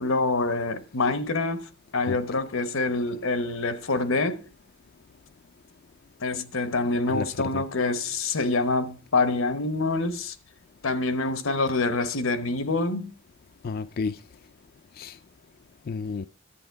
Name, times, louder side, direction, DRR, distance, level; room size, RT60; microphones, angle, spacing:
voice 1, 0.0-4.4 6.2-10.3 10.8-13.1, left 3 dB, 80° left, 1.0 m, -26 dB
voice 2, 7.0-7.6 13.6-14.2 15.0-15.2 15.9-16.3, left 4 dB, 50° left, 0.4 m, -31 dB
11.0 x 8.7 x 4.6 m
head